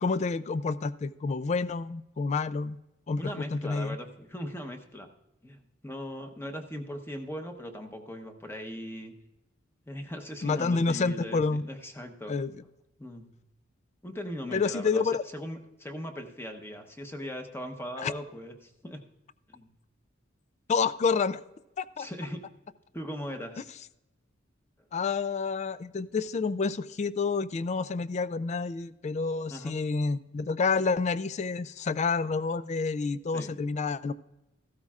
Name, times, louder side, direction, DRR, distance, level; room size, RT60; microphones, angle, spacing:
voice 1, 0.0-2.8 3.1-4.0 10.4-11.6 12.3-12.5 14.5-15.2 18.0-18.1 20.7-21.4 21.8-22.1 24.9-34.1, left 4 dB, 35° left, 16 dB, 0.3 m, -29 dB
voice 2, 3.2-5.1 5.4-9.1 9.9-12.3 13.0-13.3 14.0-15.0 15.3-19.0 19.5-19.7 22.0-22.4 22.9-23.6 29.5-29.8 33.3-33.5, equal, 10° left, 4 dB, 0.9 m, -39 dB
15.0 x 13.0 x 2.4 m, 0.95 s
head